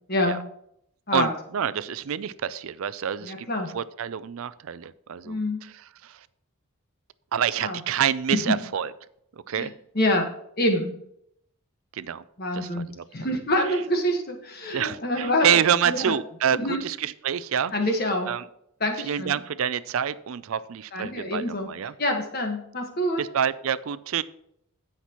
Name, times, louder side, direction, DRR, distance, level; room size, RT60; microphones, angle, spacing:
voice 1, 1.1-3.5 3.7-5.7 6.0-6.2 7.3-8.9 9.5-9.7 11.9-12.2 12.5-12.7 13.0-13.1 14.7-17.7 18.3-18.4 19.0-21.9 23.2-24.2, right 8 dB, 70° right, 16 dB, 0.4 m, -27 dB
voice 2, 3.2-3.7 5.2-5.6 7.6-7.8 8.3-8.5 9.5-10.3 10.6-11.0 12.4-12.9 13.1-15.5 15.9-16.1 16.5-16.8 17.7-18.3 18.8-19.4 20.9-21.7 22.0-23.2, left 1 dB, 45° left, 3 dB, 1.4 m, -26 dB
16.5 x 5.9 x 3.0 m, 0.74 s
head